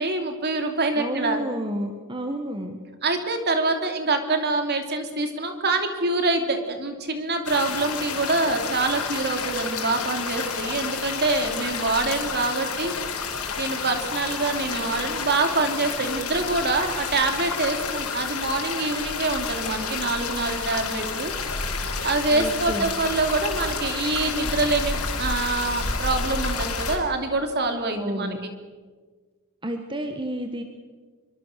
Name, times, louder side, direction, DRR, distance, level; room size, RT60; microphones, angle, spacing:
voice 1, 0.0-1.4 3.0-12.9 13.6-21.3 22.0-28.4, right 3 dB, 50° right, 6 dB, 2.9 m, -25 dB
voice 2, 0.9-2.8 22.3-22.9 27.9-28.4 29.6-30.6, right 1 dB, 20° right, 5 dB, 1.5 m, -30 dB
sound 1, 7.4-27.0, left 5 dB, 80° left, 4.8 m, -30 dB
24.5 x 23.5 x 6.7 m, 1.4 s
head